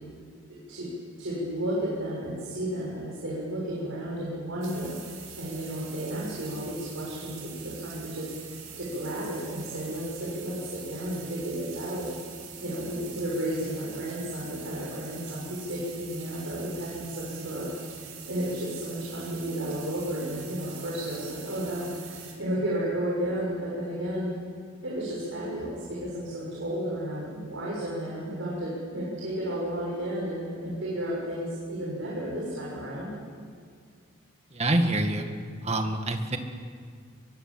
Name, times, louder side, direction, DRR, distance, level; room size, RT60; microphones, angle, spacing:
voice 1, 0.5-0.9 1.2-12.1 12.6-24.3 24.8-33.1, right 1 dB, 70° right, -5 dB, 6.7 m, -33 dB
sound 1, 4.6-22.3, right 7 dB, 85° right, 5.8 m, -44 dB
voice 2, 34.5-35.3 35.6-36.4, right 1 dB, 30° right, 5 dB, 2.0 m, -26 dB
23.5 x 23.0 x 7.8 m, 2.2 s
head